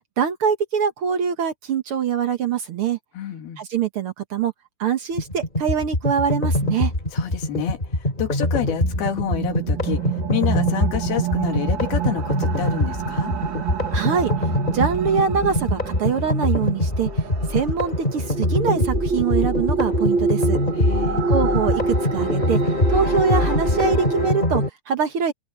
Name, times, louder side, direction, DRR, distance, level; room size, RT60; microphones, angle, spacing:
voice 1, 0.2-3.0 3.6-4.5 4.8-6.9 13.9-14.3 14.7-17.2 17.5-20.6 21.2-22.6 22.9-25.3, right 6 dB, 60° right, 1.4 m, -24 dB
voice 2, 3.1-3.6 7.1-13.3 20.8-21.2, left 10 dB, 90° left, 4.1 m, -29 dB
sound 1, 5.2-24.7, left 1 dB, 15° left, 3.4 m, -23 dB
sound 2, 8.6-24.3, right 5 dB, 85° right, 1.0 m, -27 dB
open air
omnidirectional pair, 4.3 m